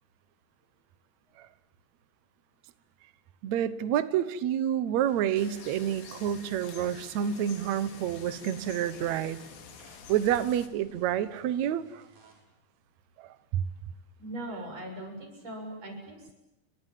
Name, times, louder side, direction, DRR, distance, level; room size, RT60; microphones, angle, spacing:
voice 1, 3.4-9.4 10.1-12.0 13.2-13.6, right 10 dB, 85° right, 15 dB, 1.5 m, -29 dB
sound 1, 5.0-12.4, right 2 dB, 55° right, 6.4 m, -56 dB
sound 2, 5.4-10.7, left 7 dB, 85° left, 4.7 m, -49 dB
voice 2, 14.2-16.3, right 1 dB, 35° right, 3 dB, 7.9 m, -40 dB
30.0 x 26.0 x 7.5 m, 0.91 s
omnidirectional pair, 4.9 m